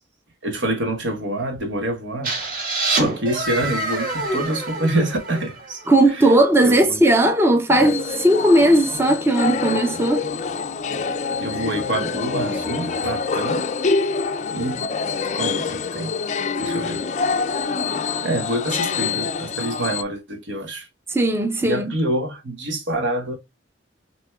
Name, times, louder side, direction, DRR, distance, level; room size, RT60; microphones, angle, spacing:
voice 1, 0.4-5.8 6.1-6.3 6.6-7.0 7.7-8.0 11.4-13.6 14.5-14.9 15.3-16.1 16.6-17.1 18.2-20.9 21.6-23.4, right 1 dB, 80° right, 1.3 m, -26 dB
sound 1, 2.2-6.0, right 2 dB, 45° right, 1.6 m, -26 dB
voice 2, 5.9-10.3 21.1-21.9, right 1 dB, 15° right, 0.5 m, -17 dB
sound 2, 7.7-20.0, left 4 dB, 40° left, 0.3 m, -26 dB
6.1 x 3.0 x 2.3 m
head